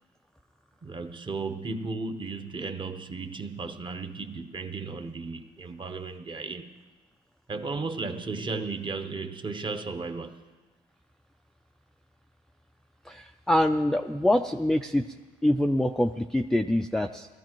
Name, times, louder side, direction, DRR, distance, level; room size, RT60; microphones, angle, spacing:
voice 1, 0.8-6.7 7.5-10.4, right 3 dB, 30° right, 7 dB, 0.9 m, -35 dB
voice 2, 13.1-15.0 15.4-17.3, left 1 dB, 5° left, 4 dB, 0.4 m, -25 dB
20.0 x 13.5 x 3.0 m, 1.3 s
cardioid pair, 110°, 17 cm